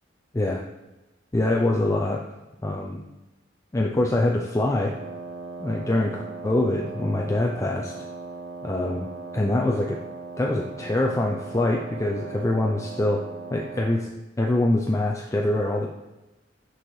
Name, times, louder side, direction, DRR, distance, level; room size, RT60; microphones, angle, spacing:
voice 1, 1.3-2.2 2.6-3.0 3.7-5.0 5.6-7.9 8.6-9.1 9.3-10.0 10.4-13.3 13.5-14.1 14.4-15.9, left 1 dB, 15° left, 0 dB, 0.4 m, -24 dB
Wind instrument woodwind instrument, 4.7-14.1, right 4 dB, 55° right, 0.5 m, -38 dB
6.5 x 6.2 x 3.1 m, 1.1 s
head